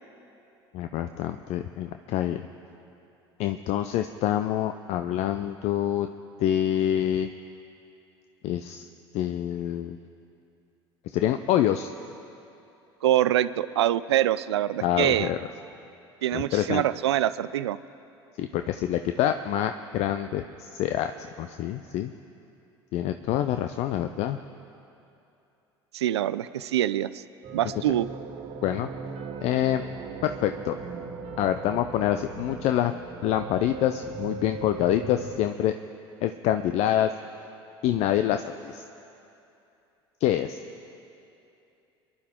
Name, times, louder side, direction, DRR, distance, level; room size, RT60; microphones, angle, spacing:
voice 1, 0.7-2.5 3.4-6.1 6.4-7.3 8.4-8.8 9.1-10.0 11.1-11.9 14.8-15.4 16.3-16.8 18.4-22.1 22.9-24.4 28.6-28.9 29.4-29.8 30.2-30.8 31.4-32.9 33.2-35.7 36.2-37.1 37.8-38.8 40.2-40.6, left 11 dB, 55° left, 9 dB, 0.5 m, -26 dB
voice 2, 13.0-15.3 16.2-17.8 25.9-27.2 27.5-28.1, right 12 dB, 85° right, 15 dB, 0.4 m, -25 dB
sound 1, 27.4-35.4, right 4 dB, 45° right, 1.6 m, -38 dB
25.0 x 11.5 x 3.7 m, 2.8 s
hypercardioid pair, 70°, 14 cm